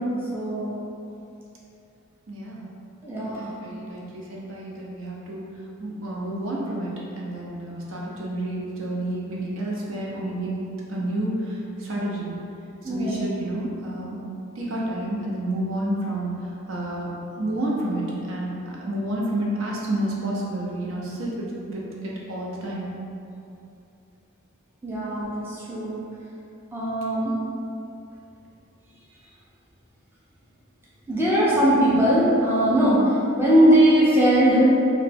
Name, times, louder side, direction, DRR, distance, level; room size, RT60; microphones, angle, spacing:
voice 1, 0.3-0.8 3.0-3.4 12.8-13.2 24.8-26.0 26.7-27.3 31.1-34.6, equal, 10° right, -8 dB, 0.5 m, -20 dB
voice 2, 2.3-2.6 3.2-5.5 5.8-10.6 10.9-12.3 12.8-14.2 14.5-16.3 16.7-22.9, right 1 dB, 65° right, -4 dB, 0.6 m, -30 dB
3.1 x 2.2 x 4.2 m, 2.7 s
head